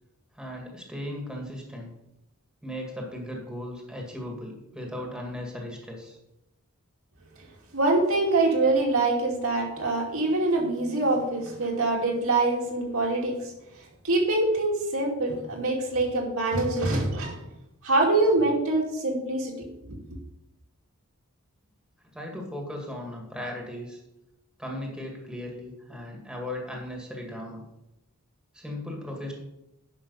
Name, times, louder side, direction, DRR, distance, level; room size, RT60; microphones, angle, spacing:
voice 1, 0.4-1.9 2.6-6.2 22.1-24.0 24.6-27.6 28.5-29.4, left 1 dB, 5° right, 0 dB, 2.0 m, -37 dB
voice 2, 7.7-13.5 14.0-17.4 17.8-19.5 19.8-20.0, right 2 dB, 65° right, -1 dB, 2.6 m, -24 dB
10.5 x 5.9 x 5.6 m, 0.88 s
head